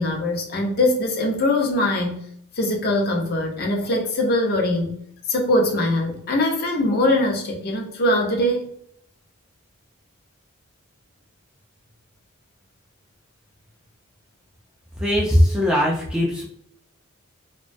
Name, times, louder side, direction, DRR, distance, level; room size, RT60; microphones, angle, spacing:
voice 1, 0.0-2.2 2.5-5.0 5.3-8.7, left 1 dB, 45° left, 1 dB, 0.5 m, -22 dB
voice 2, 14.9-16.5, equal, 5° right, -4 dB, 0.3 m, -20 dB
2.3 x 2.2 x 2.5 m, 0.67 s
head